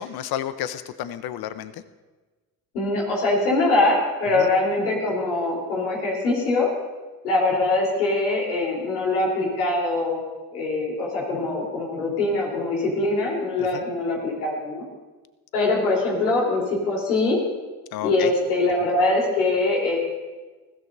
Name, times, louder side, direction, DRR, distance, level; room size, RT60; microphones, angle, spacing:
voice 1, 0.0-1.7 4.4-4.5 13.7-13.8 17.9-18.3, left 11 dB, 55° left, 13 dB, 0.9 m, -31 dB
voice 2, 2.7-6.7 7.2-10.2 10.5-14.9 15.5-17.4 18.0-20.0, left 2 dB, 85° left, -3 dB, 3.8 m, -23 dB
20.0 x 15.5 x 2.7 m, 1.3 s
hypercardioid pair, 60°, 44 cm